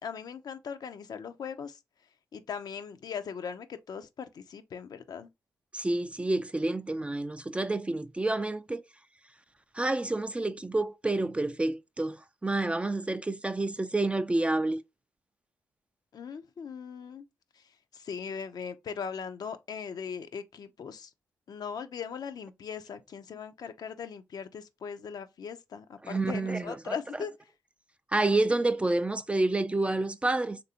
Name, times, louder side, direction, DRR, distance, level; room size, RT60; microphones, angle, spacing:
voice 1, 0.0-1.8 2.3-5.3 16.1-17.2 17.5-21.1 21.5-27.3, left 6 dB, 55° left, 0.5 m, -39 dB
voice 2, 5.7-8.8 9.7-14.8 26.1-26.9 28.1-30.6, right 2 dB, 15° right, 0.3 m, -29 dB
3.3 x 2.6 x 2.8 m
supercardioid pair, 50°, 8 cm